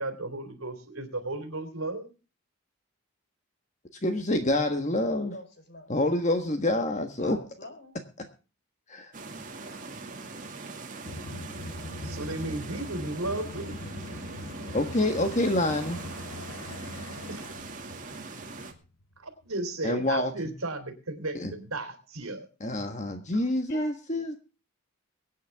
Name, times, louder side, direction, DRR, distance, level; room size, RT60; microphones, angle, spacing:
voice 1, 0.0-2.1 12.0-13.8 17.3-17.4 19.2-22.5, right 2 dB, 70° right, 8 dB, 3.3 m, -34 dB
voice 2, 4.0-5.3 5.9-7.4 8.9-9.1 14.7-16.0 19.8-20.3 21.3-21.5 22.6-24.4, left 1 dB, 30° left, 6 dB, 1.4 m, -27 dB
voice 3, 5.3-5.9 7.2-7.9 23.3-24.4, left 1 dB, 50° left, 6 dB, 4.6 m, -46 dB
sound 1, 9.1-18.7, right 3 dB, 35° right, 2.2 m, -41 dB
sound 2, 11.0-19.2, left 2 dB, 80° left, 1.1 m, -42 dB
23.5 x 9.3 x 3.5 m, 0.34 s
head